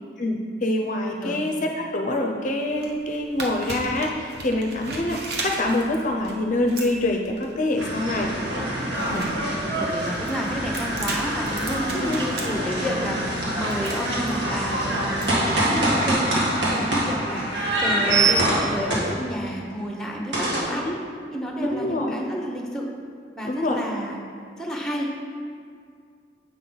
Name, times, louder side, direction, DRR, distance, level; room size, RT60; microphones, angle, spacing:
voice 1, 0.2-8.3 8.9-9.3 11.9-12.3 12.5-12.7 20.8-21.0 21.6-22.2 23.4-23.8, left 1 dB, 45° left, 1 dB, 0.5 m, -26 dB
sound 1, 2.6-15.3, right 3 dB, 60° right, 0.9 m, -37 dB
sound 2, 7.8-19.5 20.3-20.6, right 1 dB, 80° right, 1.8 m, -25 dB
voice 2, 9.1-9.4 9.7-20.9 21.3-22.9 23.4-24.2 24.6-25.1, equal, 5° left, 0 dB, 0.8 m, -30 dB
7.9 x 5.5 x 3.9 m, 2.2 s
head